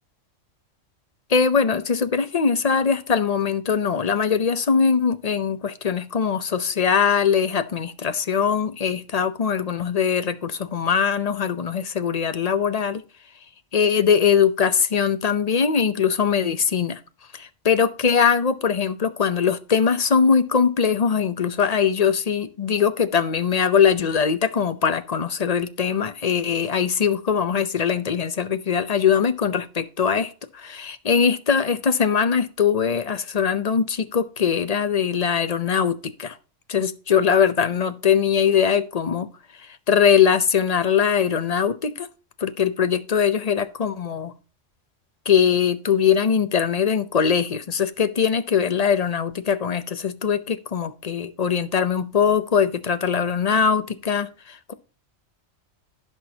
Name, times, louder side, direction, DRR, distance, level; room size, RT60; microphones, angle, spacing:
voice 1, 1.3-13.0 13.7-17.0 17.3-36.4 36.7-39.3 39.9-42.1 42.4-44.3 45.3-54.7, left 7 dB, 40° left, 0.7 m, -21 dB
15.5 x 6.1 x 2.8 m
omnidirectional pair, 1.3 m